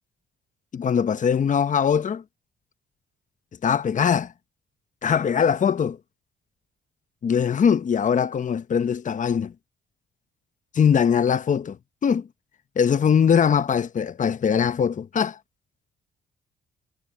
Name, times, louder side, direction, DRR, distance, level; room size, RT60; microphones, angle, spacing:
voice 1, 0.7-2.2 3.6-4.3 5.0-6.0 7.2-9.5 10.7-11.8 12.0-12.3 12.8-15.4, left 7 dB, 40° left, 0.9 m, -21 dB
cardioid pair, 90°, 20 cm